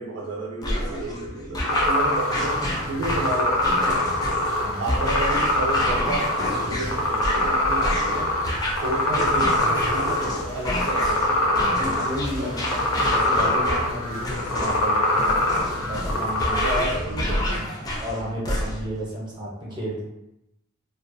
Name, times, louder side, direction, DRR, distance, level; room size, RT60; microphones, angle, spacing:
voice 1, 0.0-2.6 2.9-4.1 4.8-8.4 8.8-11.6 12.4-12.6 16.5-17.7, right 1 dB, 65° right, -3 dB, 0.4 m, -31 dB
sound 1, 0.6-19.0, left 1 dB, 20° left, 0.3 m, -29 dB
sound 2, 1.7-16.8, left 1 dB, 75° left, 0.5 m, -24 dB
voice 2, 4.4-5.1 8.9-9.0 11.6-15.1 15.7-16.6 17.0-17.2 17.5-20.0, equal, 20° right, -6 dB, 0.6 m, -33 dB
2.3 x 2.2 x 2.5 m, 0.86 s
head